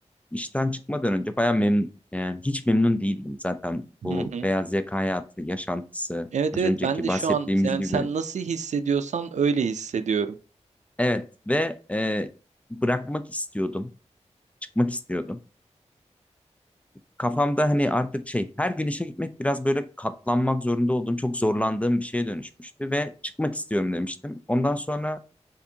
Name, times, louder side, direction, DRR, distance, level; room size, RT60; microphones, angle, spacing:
voice 1, 0.3-8.1 11.0-12.3 12.7-13.9 14.8-15.4 17.2-23.1 23.4-25.2, left 1 dB, 10° left, 0.3 m, -26 dB
voice 2, 4.1-4.5 6.3-10.3, right 6 dB, 80° right, 0.4 m, -26 dB
6.9 x 2.5 x 2.7 m
wide cardioid pair, 85°, 12 cm